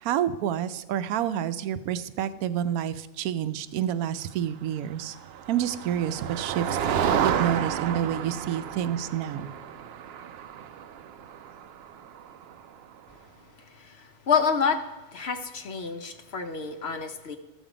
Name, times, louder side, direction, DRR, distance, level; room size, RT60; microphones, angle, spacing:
voice 1, 0.0-5.2 5.5-6.8 7.2-9.5, right 10 dB, 90° right, 13 dB, 1.0 m, -28 dB
Motor vehicle (road), 5.0-12.8, right 8 dB, 65° right, 0.6 m, -31 dB
voice 2, 13.8-14.8 15.1-17.4, left 6 dB, 55° left, 7 dB, 0.9 m, -28 dB
13.0 x 7.2 x 4.9 m, 1.1 s
omnidirectional pair, 1.5 m